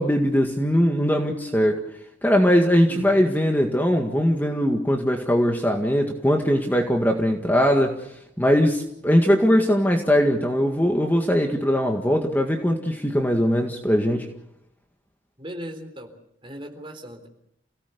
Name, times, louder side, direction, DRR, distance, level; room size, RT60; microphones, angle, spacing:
voice 1, 0.0-1.8 2.2-8.1 8.4-14.3, equal, 10° left, 3 dB, 1.9 m, -20 dB
voice 2, 2.9-3.2 15.4-16.1 16.4-17.3, equal, 25° right, 5 dB, 3.8 m, -38 dB
29.0 x 17.5 x 6.9 m, 0.78 s
head